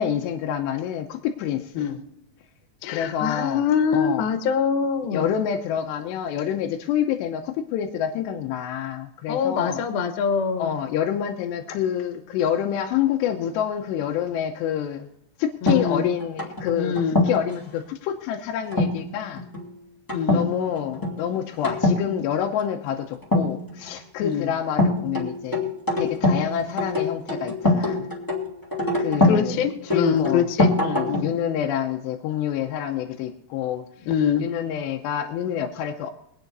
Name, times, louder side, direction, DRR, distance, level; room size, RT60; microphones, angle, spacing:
voice 1, 0.0-1.9 2.9-3.6 3.9-4.3 5.1-9.8 10.6-15.1 15.4-17.0 17.2-19.4 20.3-28.1 29.0-30.5 30.8-34.1 34.4-36.1, left 9 dB, 85° left, 2 dB, 2.9 m, -27 dB
voice 2, 2.8-5.2 9.3-10.7 15.6-16.1 16.8-17.2 20.1-20.5 24.2-24.5 29.2-30.7 31.1-31.3 34.1-34.5, left 7 dB, 70° left, 8 dB, 2.8 m, -24 dB
sound 1, 15.7-17.5 18.7-19.0 19.4-19.6 20.1-20.5 20.8-21.2 21.6-22.0 23.2-24.0 24.8-26.5 26.8-29.4 29.9-31.4, left 2 dB, 10° left, 1.2 m, -23 dB
24.0 x 9.2 x 2.6 m, 0.79 s
omnidirectional pair, 4.9 m